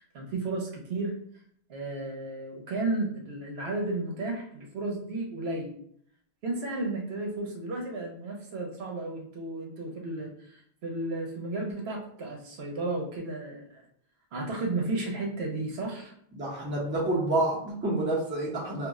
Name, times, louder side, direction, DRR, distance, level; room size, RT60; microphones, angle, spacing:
voice 1, 0.1-1.1 1.7-5.7 6.4-13.8 14.3-16.1, right 2 dB, 75° right, 1 dB, 0.9 m, -33 dB
voice 2, 16.3-18.9, right 2 dB, 15° right, -4 dB, 0.5 m, -28 dB
2.4 x 2.0 x 3.5 m, 0.64 s
omnidirectional pair, 1.1 m